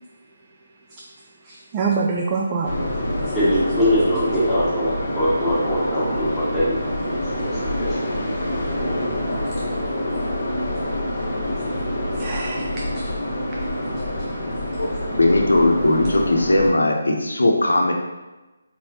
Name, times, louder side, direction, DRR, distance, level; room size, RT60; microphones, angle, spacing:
voice 1, 1.4-2.9 12.1-13.1, right 4 dB, 20° right, -2 dB, 0.4 m, -26 dB
sound 1, 2.6-16.7, left 1 dB, 25° left, 1.2 m, -26 dB
voice 2, 3.3-6.7 7.3-7.4, equal, ahead, -13 dB, 1.5 m, -21 dB
voice 3, 14.8-17.9, left 1 dB, 65° left, 1 dB, 0.8 m, -19 dB
4.7 x 3.8 x 2.9 m, 1.1 s
figure-of-eight pair, 150°, 0 cm